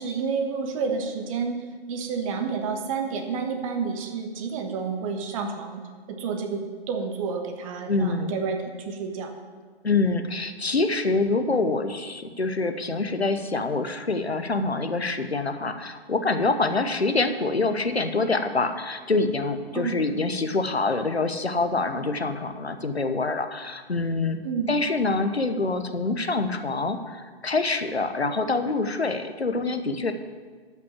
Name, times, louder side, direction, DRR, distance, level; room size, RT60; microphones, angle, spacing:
voice 1, 0.0-1.6 1.9-5.8 6.1-9.3 19.7-19.9 24.4-24.8, right 5 dB, 35° right, 5 dB, 1.4 m, -29 dB
voice 2, 7.9-8.3 9.8-24.4 24.7-30.1, left 3 dB, 90° left, 8 dB, 1.1 m, -25 dB
12.5 x 5.9 x 7.4 m, 1.5 s
figure-of-eight pair, 130°, 31 cm